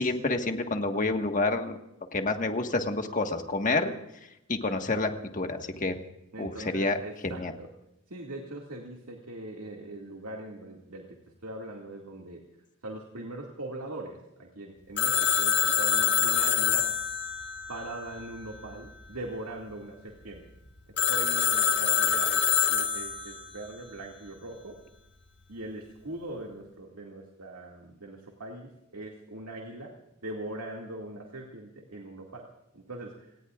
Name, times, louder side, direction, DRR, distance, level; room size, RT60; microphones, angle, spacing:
voice 1, 0.0-1.8 2.1-3.9 4.5-6.0 6.4-7.0 7.2-7.5, left 2 dB, 35° left, 5 dB, 1.6 m, -28 dB
voice 2, 6.3-7.7 8.1-11.2 11.4-12.4 12.8-16.9 17.7-20.5 21.1-24.8 25.5-29.9 30.2-32.5 32.7-33.3, right 1 dB, 85° right, 0 dB, 2.2 m, -41 dB
Telephone, 15.0-18.6 21.0-23.5, left 7 dB, 55° left, 1.8 m, -26 dB
29.0 x 18.5 x 2.5 m, 0.88 s
head